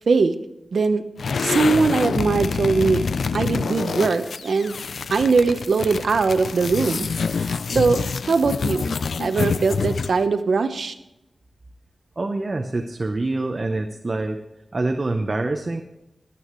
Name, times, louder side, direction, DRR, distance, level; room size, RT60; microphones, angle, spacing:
voice 1, 0.7-1.0 1.4-3.0 3.3-4.8 5.1-7.1 7.4-10.9, right 4 dB, 80° right, 9 dB, 0.9 m, -21 dB
sound 1, 1.2-10.3, left 5 dB, 85° left, 0.4 m, -26 dB
voice 2, 12.2-14.4 14.7-15.8, right 2 dB, 35° right, 4 dB, 0.8 m, -25 dB
24.0 x 8.6 x 3.2 m, 0.93 s
wide cardioid pair, 115°, 0 cm